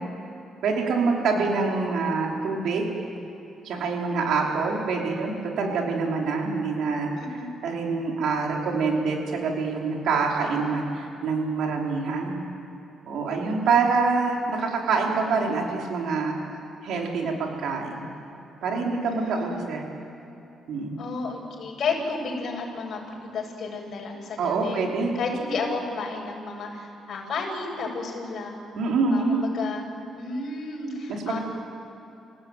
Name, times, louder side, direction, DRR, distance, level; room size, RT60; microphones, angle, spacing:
voice 1, 0.6-2.9 3.6-7.1 7.6-12.4 13.1-16.4 16.8-18.1 18.6-19.9 20.7-21.0 24.4-25.1 28.8-29.4 31.1-31.4, right 4 dB, 75° right, 0 dB, 5.1 m, -26 dB
voice 2, 19.1-19.6 21.0-24.8 25.2-28.6 29.1-29.8 30.1-31.4, left 4 dB, 60° left, -1 dB, 7.4 m, -32 dB
30.0 x 17.5 x 9.4 m, 2.8 s
cardioid pair, 90°, 0 cm